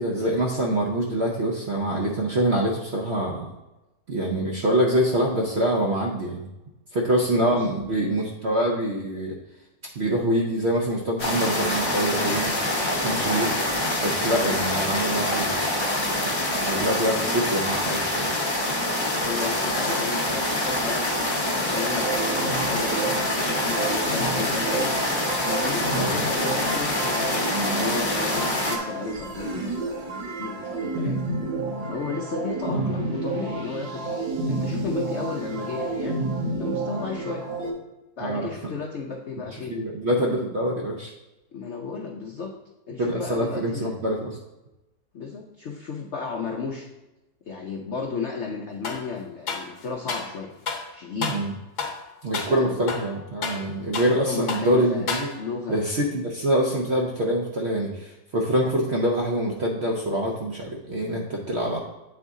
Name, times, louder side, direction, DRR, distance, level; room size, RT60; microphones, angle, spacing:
voice 1, 0.0-3.5 4.1-6.5 6.9-9.4 10.0-12.5 12.9-13.5 14.0-15.6 16.5-18.3 25.9-26.1 32.7-32.9 38.2-38.5 39.5-41.1 43.0-44.4 51.2-51.5 52.2-55.3 55.7-61.8, right 1 dB, 60° right, -1 dB, 0.7 m, -25 dB
sound 1, 11.2-28.8, left 1 dB, 20° left, 0.8 m, -25 dB
voice 2, 17.1-17.4 19.1-23.2 23.6-25.0 25.4-30.1 30.4-31.2 31.8-34.2 34.5-36.1 36.6-37.4 38.2-39.8 41.5-42.5 42.9-43.9 45.1-46.9 47.4-50.5 50.9-51.3 52.5-52.9 54.1-55.1 55.4-55.8, left 5 dB, 70° left, 1 dB, 0.6 m, -33 dB
sound 2, 21.7-37.7, right 3 dB, 85° right, 1.8 m, -30 dB
sound 3, 48.8-49.1 49.5-50.3 50.7-50.9 51.2-51.5 51.8-52.0 52.3-52.6 52.9-54.2 54.5-54.7 55.1-55.6, left 5 dB, 50° left, 1.2 m, -31 dB
8.3 x 4.0 x 3.6 m, 1.0 s
omnidirectional pair, 1.9 m